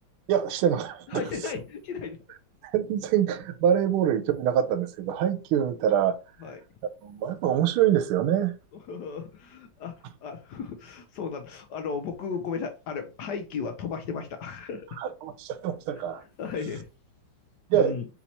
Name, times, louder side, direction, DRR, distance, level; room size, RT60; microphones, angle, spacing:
voice 1, 0.3-1.3 2.6-6.2 7.0-8.5 15.0-16.2 17.7-18.0, right 9 dB, 85° right, 1.5 m, -25 dB
voice 2, 1.1-2.2 6.4-6.6 8.9-9.9 10.2-14.9 16.4-16.9 17.7-18.1, left 5 dB, 70° left, 1.0 m, -35 dB
4.2 x 3.0 x 4.1 m
omnidirectional pair, 2.3 m